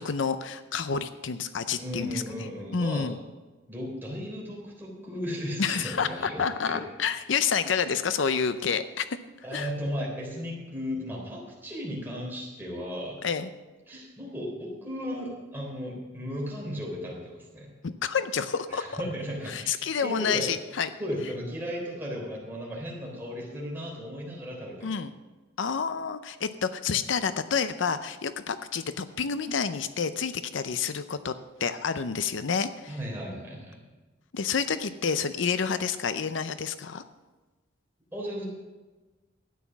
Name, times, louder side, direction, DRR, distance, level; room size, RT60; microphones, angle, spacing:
voice 1, 0.0-2.2 2.7-3.2 5.6-9.2 9.5-9.7 13.2-13.5 17.8-18.9 19.5-20.9 24.8-25.1 25.6-31.3 31.6-32.9 34.3-37.0, left 6 dB, 70° left, 12 dB, 0.6 m, -29 dB
voice 2, 1.8-3.1 3.7-6.8 9.4-13.2 13.9-17.7 18.7-20.5 21.0-24.9 32.9-33.8 38.1-38.4, equal, 10° right, -3 dB, 3.6 m, -35 dB
12.5 x 9.3 x 6.0 m, 1.2 s
head